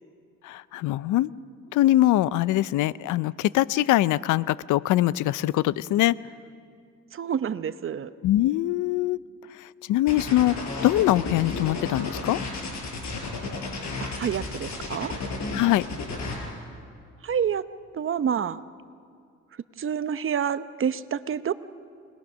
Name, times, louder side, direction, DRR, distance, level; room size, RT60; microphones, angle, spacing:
voice 1, 0.4-1.3 1.7-6.1 8.2-9.2 9.6-12.4 15.5-15.8, left 15 dB, 80° left, 19 dB, 0.5 m, -23 dB
voice 2, 7.1-8.1 14.0-15.2 17.2-17.6 17.9-18.6 19.8-21.5, right 8 dB, 45° right, 13 dB, 0.8 m, -28 dB
sound 1, 10.1-16.4, left 3 dB, 65° left, 5.7 m, -32 dB
29.5 x 20.0 x 6.3 m, 2.3 s
cardioid pair, 90°, 30 cm